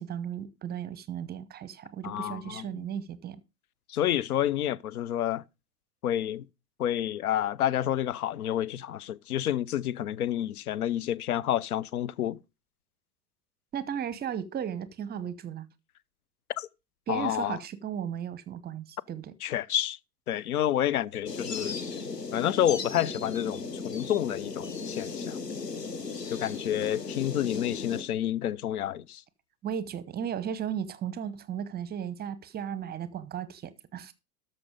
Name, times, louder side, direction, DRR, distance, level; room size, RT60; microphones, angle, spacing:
voice 1, 0.0-3.4 13.7-15.7 17.1-19.3 29.6-34.1, right 8 dB, 20° right, 0.8 m, -35 dB
voice 2, 2.0-2.7 3.9-5.4 6.0-6.4 6.8-12.4 16.6-16.7 17.1-17.6 19.4-20.0 20.3-21.8 22.3-25.4 26.3-29.2, left 11 dB, 65° left, 0.6 m, -29 dB
sound 1, 21.3-28.0, left 4 dB, 85° left, 1.1 m, -36 dB
13.0 x 5.5 x 5.2 m
figure-of-eight pair, 85°, 47 cm